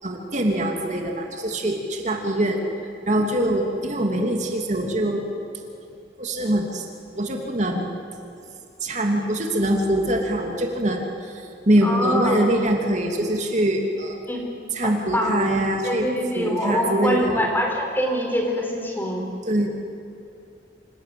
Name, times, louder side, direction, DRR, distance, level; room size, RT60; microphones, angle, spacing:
voice 1, 0.0-2.6 3.1-5.2 6.2-6.8 7.1-7.9 8.8-14.2 14.7-16.1 16.3-17.4 19.5-19.7, right 1 dB, 45° right, 2 dB, 2.8 m, -23 dB
voice 2, 11.8-12.4 14.3-14.5 14.8-15.4 15.8-19.3, equal, 10° left, 2 dB, 4.2 m, -24 dB
27.5 x 27.0 x 7.8 m, 2.6 s
head